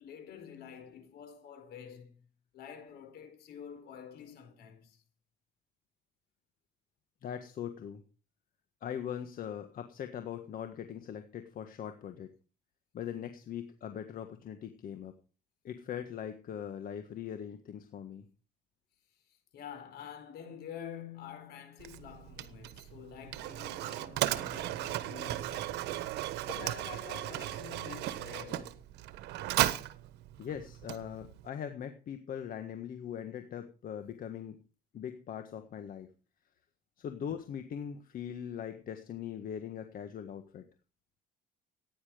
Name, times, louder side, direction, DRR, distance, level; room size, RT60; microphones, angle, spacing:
voice 1, 0.0-2.2 2.5-5.0 19.5-26.1 26.5-28.8, left 8 dB, 75° left, 4.6 m, -48 dB
voice 2, 7.2-8.0 8.8-12.3 12.9-15.1 15.6-18.2 30.4-34.6 34.9-36.1 37.0-40.6, left 9 dB, 55° left, 1.6 m, -41 dB
Mechanisms, 21.8-31.5, right 14 dB, 85° right, 1.2 m, -36 dB
15.5 x 10.0 x 5.1 m
cardioid pair, 110°, 17 cm